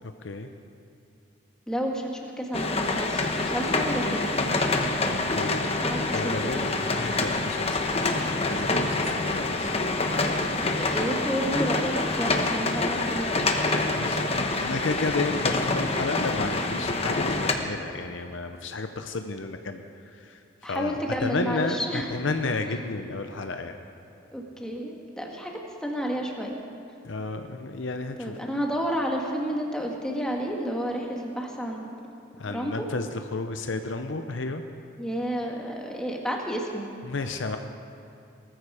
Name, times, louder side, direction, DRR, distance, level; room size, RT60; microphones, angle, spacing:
voice 1, 0.0-0.5 5.1-5.7 6.1-9.7 14.0-23.8 27.0-28.4 32.4-34.6 37.0-37.6, left 3 dB, 65° left, 6 dB, 0.7 m, -32 dB
voice 2, 1.7-4.5 5.6-6.7 10.6-13.5 20.6-22.1 24.3-26.6 28.2-31.9 32.5-32.7 35.0-36.9, equal, 5° left, -1 dB, 1.7 m, -31 dB
sound 1, 2.5-17.5, left 2 dB, 30° left, 1.0 m, -26 dB
19.5 x 14.0 x 4.9 m, 2.7 s
head